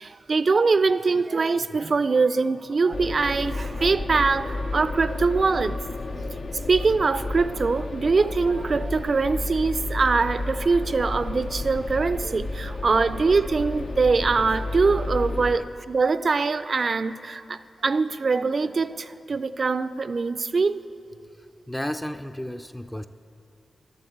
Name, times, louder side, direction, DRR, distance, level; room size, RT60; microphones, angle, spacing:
voice 1, 0.0-5.8 6.1-6.2 6.7-20.8, right 4 dB, 55° right, 14 dB, 0.4 m, -23 dB
sound 1, 2.9-15.6, left 2 dB, 70° left, 0.6 m, -32 dB
voice 2, 21.7-23.1, left 1 dB, 10° left, 8 dB, 0.4 m, -33 dB
11.0 x 7.8 x 8.0 m, 2.7 s
cardioid pair, 45°, 0 cm